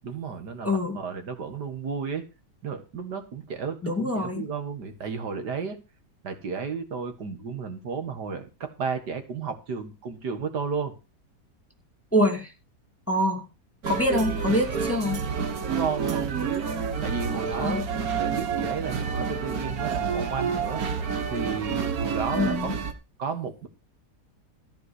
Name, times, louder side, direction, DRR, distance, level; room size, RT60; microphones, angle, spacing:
voice 1, 0.0-2.2 2.6-5.8 6.2-10.9 14.1-14.2 15.7-16.7 17.0-17.8 18.2-20.8 21.3-22.8 23.2-23.7, right 5 dB, 80° right, 8 dB, 2.3 m, -33 dB
voice 2, 0.6-1.0 3.8-4.4 12.1-12.5 13.1-13.4 13.9-15.2 17.6-17.8 22.3-22.7, left 1 dB, 10° left, 2 dB, 2.4 m, -25 dB
sound 1, 13.8-22.9, right 6 dB, 60° right, 1.8 m, -29 dB
14.0 x 5.0 x 8.1 m, 0.29 s
omnidirectional pair, 1.8 m